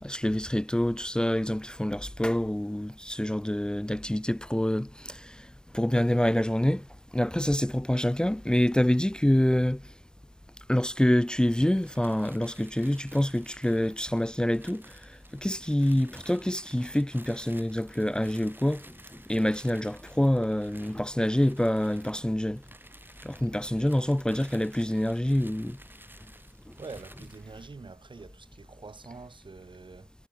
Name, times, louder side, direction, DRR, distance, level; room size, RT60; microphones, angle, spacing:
voice 1, 0.0-5.5 5.7-6.8 7.1-9.8 10.7-14.9 15.3-18.8 19.3-22.6 23.2-25.8, left 1 dB, 10° left, 0.6 m, -26 dB
sound 1, 11.7-27.5, right 1 dB, 25° right, 6.4 m, -54 dB
voice 2, 26.8-30.1, right 4 dB, 75° right, 2.5 m, -45 dB
cardioid pair, 40°, 8 cm